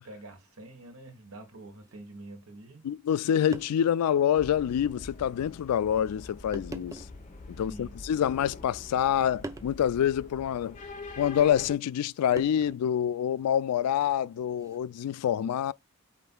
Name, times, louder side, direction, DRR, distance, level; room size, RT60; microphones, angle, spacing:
voice 1, 0.0-2.8 7.5-7.9, right 2 dB, 75° right, 1.6 m, -47 dB
sound 1, 1.8-2.0 3.1-3.2 3.5-4.0 4.6-4.7 5.6-5.8 6.5-7.2 8.1-8.7 9.4-9.8 11.3-11.5 12.4-13.0 14.5-14.8, right 2 dB, 15° right, 0.4 m, -43 dB
voice 2, 2.8-7.0 7.5-10.8 11.2-15.7, left 9 dB, 90° left, 0.3 m, -26 dB
sound 2, 4.4-11.7, left 3 dB, 35° left, 0.9 m, -45 dB
5.1 x 4.3 x 2.2 m
head